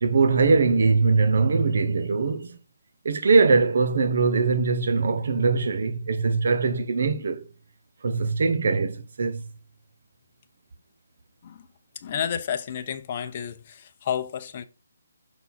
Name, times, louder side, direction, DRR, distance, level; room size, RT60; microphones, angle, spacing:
voice 1, 0.0-2.6 3.0-7.5 8.0-9.4, right 4 dB, 60° right, 0.7 m, -22 dB
voice 2, 12.0-14.6, left 8 dB, 35° left, 0.7 m, -31 dB
6.1 x 4.0 x 4.3 m
hypercardioid pair, 160°, 0 cm